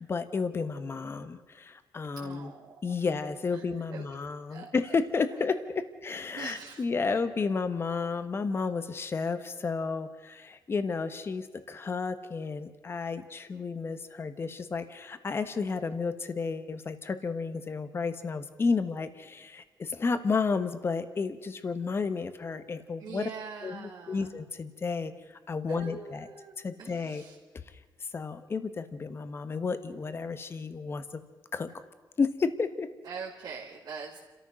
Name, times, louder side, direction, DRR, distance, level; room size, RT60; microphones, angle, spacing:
voice 1, 0.0-2.5 2.8-23.3 23.6-25.1 25.5-26.3 26.6-27.2 28.1-31.2 31.5-31.7 32.2-32.9, left 4 dB, 35° left, 10 dB, 1.3 m, -32 dB
voice 2, 2.1-2.7 3.5-3.7 3.9-4.0 4.5-4.7 6.3-7.1 7.9-8.0 23.0-24.3 25.7-27.4 33.0-34.2, right 6 dB, 65° right, -3 dB, 2.3 m, -43 dB
30.0 x 13.5 x 6.4 m, 1.2 s
wide cardioid pair, 150°, 8 cm